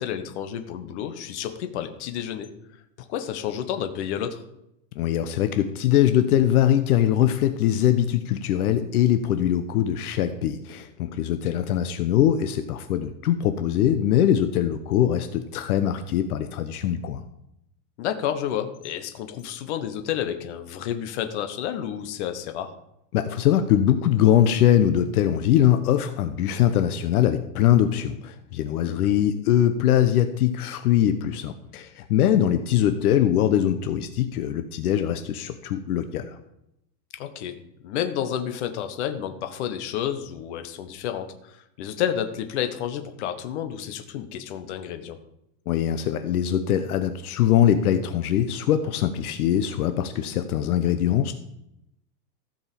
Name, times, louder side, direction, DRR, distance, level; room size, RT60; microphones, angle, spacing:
voice 1, 0.0-2.5 3.0-4.4 18.0-22.7 28.8-29.1 37.1-37.5 37.8-45.2, left 9 dB, 45° left, 8 dB, 1.2 m, -30 dB
voice 2, 5.0-17.2 23.1-36.3 45.7-51.3, left 10 dB, 65° left, 9 dB, 1.0 m, -22 dB
15.0 x 5.3 x 7.0 m, 0.82 s
supercardioid pair, 180°, 48 cm